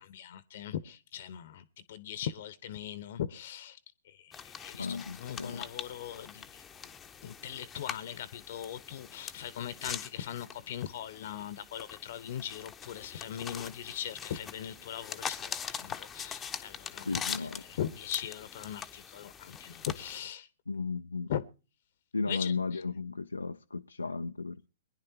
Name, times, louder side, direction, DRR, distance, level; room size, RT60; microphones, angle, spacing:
voice 1, 0.0-3.8 4.1-6.9 7.2-20.5 21.3-21.4 22.3-22.8, left 10 dB, 55° left, 0.9 m, -40 dB
sound 1, 4.3-20.2, left 7 dB, 15° left, 0.9 m, -43 dB
voice 2, 4.8-5.6 17.1-17.6 20.7-21.3 22.1-24.7, left 4 dB, 85° left, 0.5 m, -35 dB
23.5 x 10.5 x 2.8 m
figure-of-eight pair, 115°, 0 cm